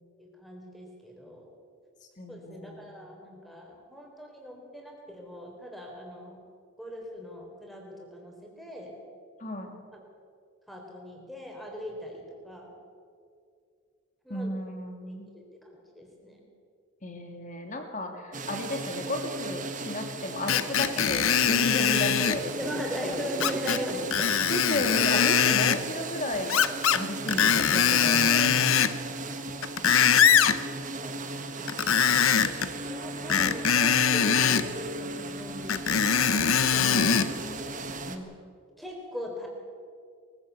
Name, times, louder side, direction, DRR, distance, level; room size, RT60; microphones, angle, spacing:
voice 1, 0.2-1.5 2.3-6.4 6.8-9.0 9.9-10.0 10.7-12.7 14.2-14.7 15.1-16.5 22.6-24.9 30.0-32.1 32.4-36.1 36.7-37.2 38.1-38.3 38.8-39.5, equal, ahead, 0 dB, 3.8 m, -40 dB
voice 2, 2.2-2.9 9.4-9.8 14.3-15.3 17.0-22.8 24.5-26.6 26.9-28.5 36.7-37.6, left 1 dB, 35° left, 4 dB, 2.6 m, -33 dB
sound 1, 18.3-38.2, right 3 dB, 35° right, 1.6 m, -37 dB
Screech, 20.5-22.4 23.4-23.8 24.1-25.8 26.5-27.0 27.3-29.0 29.5-30.6 31.7-32.7 33.3-34.7 35.7-37.3 37.9-38.0, left 7 dB, 80° left, 0.9 m, -22 dB
22.5 x 16.0 x 8.3 m, 2.3 s
head